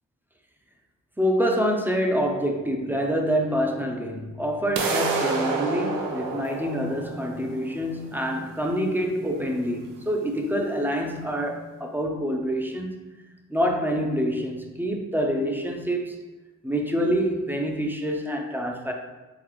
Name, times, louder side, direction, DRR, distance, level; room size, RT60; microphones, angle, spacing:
voice 1, 1.2-13.1 13.5-16.2 16.6-18.9, equal, 5° right, 2 dB, 0.7 m, -26 dB
sound 1, 4.8-10.7, right 4 dB, 70° right, 0.7 m, -30 dB
4.0 x 3.9 x 3.1 m, 1.1 s
cardioid pair, 60°, 34 cm